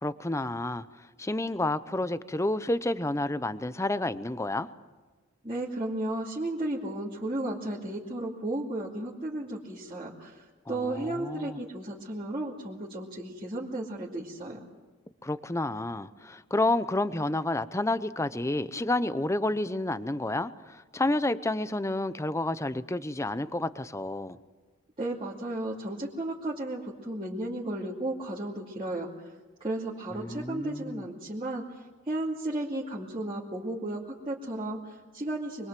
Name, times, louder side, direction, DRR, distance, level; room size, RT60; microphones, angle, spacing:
voice 1, 0.0-4.7 10.7-11.6 15.2-24.4 30.1-31.0, left 2 dB, 15° left, 14 dB, 0.7 m, -30 dB
voice 2, 5.4-14.6 25.0-29.1 29.6-31.7 32.1-35.7, right 1 dB, 25° right, -7 dB, 2.6 m, -34 dB
25.0 x 22.5 x 7.6 m, 1.3 s
head